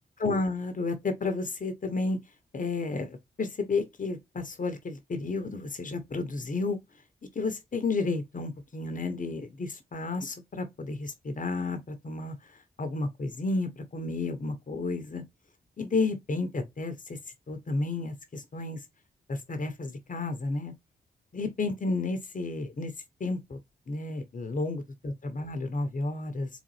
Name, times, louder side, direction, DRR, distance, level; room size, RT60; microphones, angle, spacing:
voice 1, 0.2-2.2 2.5-6.8 7.3-12.4 12.8-15.2 15.8-17.2 17.5-18.8 19.3-20.7 21.3-22.9 23.2-23.6 23.9-26.5, left 3 dB, 45° left, 1.1 m, -32 dB
4.0 x 3.4 x 3.2 m
supercardioid pair, 45°, 18 cm